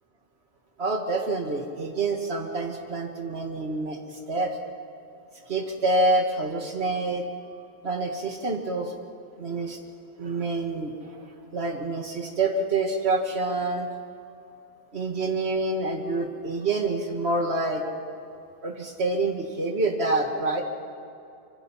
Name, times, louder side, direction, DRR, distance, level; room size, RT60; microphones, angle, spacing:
voice 1, 0.8-4.6 5.5-7.3 7.8-8.9 9.4-9.8 10.2-13.9 14.9-17.8 18.6-20.6, right 2 dB, 80° right, 2 dB, 2.0 m, -27 dB
25.5 x 25.5 x 5.7 m, 2.7 s
omnidirectional pair, 1.1 m